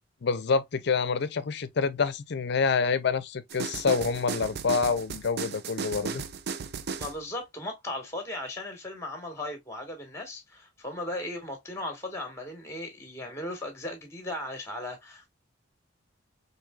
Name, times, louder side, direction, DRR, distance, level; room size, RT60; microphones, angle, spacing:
voice 1, 0.2-6.2, left 5 dB, 60° left, 0.5 m, -27 dB
sound 1, 3.5-7.2, right 5 dB, 55° right, 0.4 m, -35 dB
voice 2, 7.0-15.3, left 1 dB, 15° left, 1.2 m, -37 dB
4.6 x 2.7 x 2.3 m
head